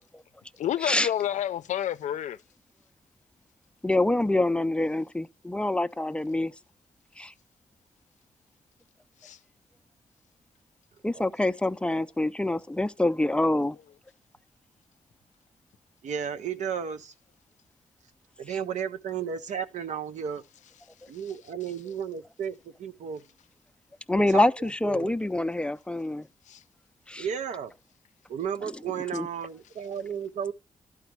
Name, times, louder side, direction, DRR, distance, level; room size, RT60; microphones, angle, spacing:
voice 1, 0.6-2.4 9.2-9.4 26.5-26.6, left 11 dB, 90° left, 0.4 m, -29 dB
voice 2, 3.8-6.5 7.2-7.3 11.0-13.8 18.5-18.6 24.1-26.3 27.1-27.3 29.1-29.3, left 1 dB, 10° left, 0.4 m, -26 dB
voice 3, 16.0-17.1 18.4-20.4 21.1-23.2 24.3-24.5 24.8-25.1 27.2-27.7 28.3-30.5, right 7 dB, 85° right, 0.7 m, -33 dB
11.5 x 4.9 x 4.6 m
cardioid pair, 80°, 12 cm